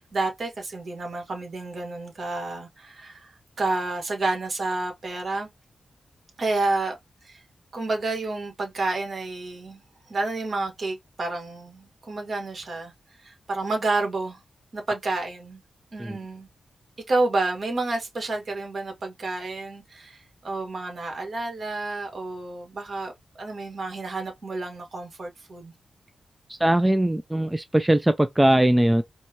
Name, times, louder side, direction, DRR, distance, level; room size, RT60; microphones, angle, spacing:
voice 1, 0.0-5.5 6.4-7.0 7.2-7.4 7.7-9.8 10.1-12.9 13.2-14.4 14.7-15.6 15.9-16.5 17.1-23.1 23.4-25.7, right 2 dB, 60° right, 1.5 m, -30 dB
voice 2, 26.5-29.0, right 1 dB, 10° right, 0.4 m, -20 dB
4.5 x 2.2 x 2.8 m
cardioid pair, 65°, 0 cm